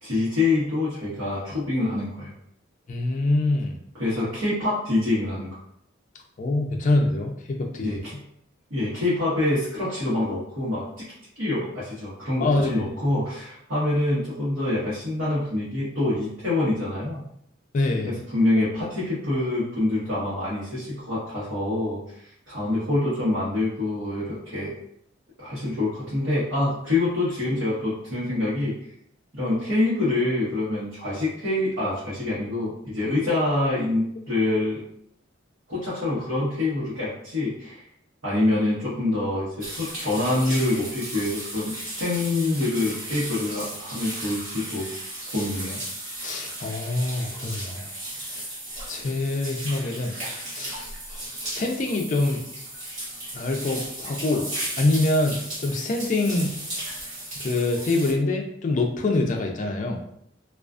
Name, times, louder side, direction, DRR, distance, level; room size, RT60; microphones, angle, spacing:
voice 1, 0.0-2.3 4.0-5.5 7.8-8.1 8.7-10.8 11.4-17.3 18.0-24.7 25.4-28.7 29.3-34.8 35.7-37.8 38.2-44.9 45.3-45.8, left 2 dB, 90° right, -11 dB, 1.0 m, -26 dB
voice 2, 2.9-3.8 6.4-8.0 12.4-12.9 17.7-18.2 46.2-47.9 48.3-48.5 48.9-50.1 50.5-50.8 51.1-51.2 51.5-52.4 53.3-54.5 54.8-56.5 57.4-60.0, left 2 dB, 40° left, 3 dB, 0.4 m, -25 dB
sound 1, 39.6-58.1, right 1 dB, 40° right, 1.1 m, -35 dB
2.3 x 2.3 x 2.4 m, 0.72 s
head